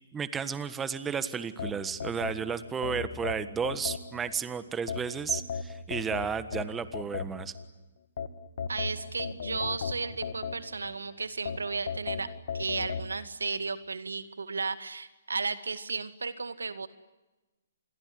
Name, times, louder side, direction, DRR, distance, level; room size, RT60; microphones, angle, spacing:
voice 1, 0.1-7.5, right 6 dB, 15° right, 13 dB, 1.5 m, -33 dB
sound 1, 1.6-4.4 4.9-7.7 8.2-11.0 11.5-13.1, left 6 dB, 60° left, 2.4 m, -36 dB
voice 2, 8.7-12.3 12.5-16.9, right 4 dB, 85° right, 12 dB, 2.1 m, -34 dB
28.0 x 22.0 x 9.6 m, 1.1 s
hypercardioid pair, 135°, 0 cm